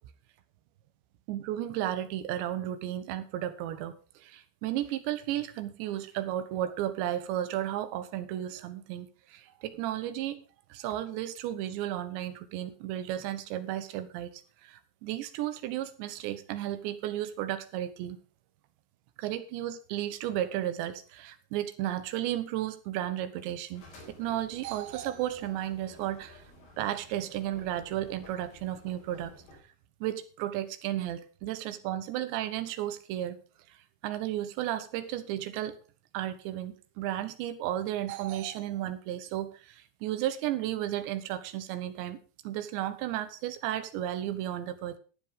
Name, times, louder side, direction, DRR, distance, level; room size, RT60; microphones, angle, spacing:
voice 1, 1.3-10.4 10.7-14.3 14.6-18.2 19.2-26.4 26.8-29.3 30.0-33.4 34.0-35.8 36.1-42.2 42.4-45.0, right 12 dB, 80° right, 11 dB, 3.3 m, -34 dB
sound 1, 23.7-29.6, left 2 dB, 55° left, 5.6 m, -53 dB
12.5 x 8.8 x 5.0 m, 0.36 s
omnidirectional pair, 5.2 m